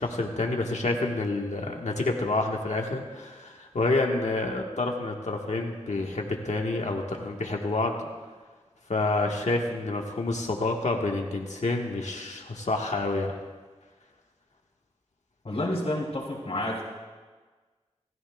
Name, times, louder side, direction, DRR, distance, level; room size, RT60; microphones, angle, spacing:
voice 1, 0.0-8.0 8.9-13.3, left 2 dB, 75° left, 1 dB, 1.5 m, -28 dB
voice 2, 15.4-16.8, left 1 dB, 60° left, -8 dB, 3.3 m, -29 dB
29.5 x 14.5 x 2.4 m, 1.4 s
wide cardioid pair, 75°, 12 cm